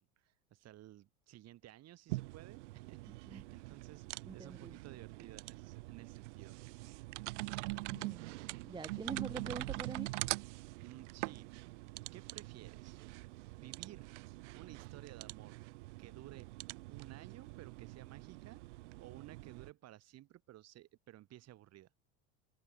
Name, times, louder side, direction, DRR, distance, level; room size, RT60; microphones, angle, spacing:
voice 1, 0.0-6.6 10.6-11.5 12.1-13.0 13.5-14.2 14.5-15.6 16.0-16.5 16.9-18.6 19.0-21.9, right 14 dB, 45° right, 4.8 m, -55 dB
sound 1, 2.1-19.7, right 22 dB, 85° right, 0.7 m, -44 dB
voice 2, 4.2-4.8 7.9-8.2 8.6-10.1, right 4 dB, 15° right, 1.2 m, -45 dB
supercardioid pair, 120°, 35 cm